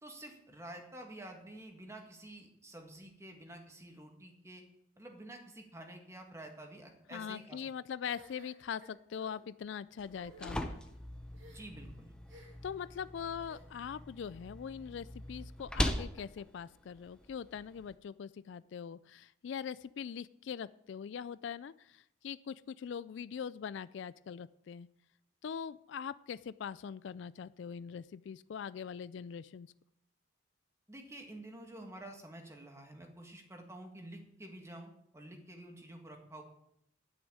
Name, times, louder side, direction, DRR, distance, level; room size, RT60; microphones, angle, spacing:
voice 1, 0.0-4.6 5.0-7.6 11.5-12.1 30.9-36.4, right 1 dB, 15° right, 3 dB, 1.8 m, -49 dB
voice 2, 7.1-10.8 12.6-24.9 25.4-29.7, left 7 dB, 65° left, 17 dB, 0.3 m, -42 dB
sound 1, 8.1-9.4 10.1-10.4 11.3-11.8 12.3-12.7 13.4-14.0, right 1 dB, 75° right, 3.1 m, -57 dB
sound 2, 10.0-17.9, equal, 5° left, 0.8 m, -41 dB
11.5 x 6.2 x 8.8 m, 0.77 s
head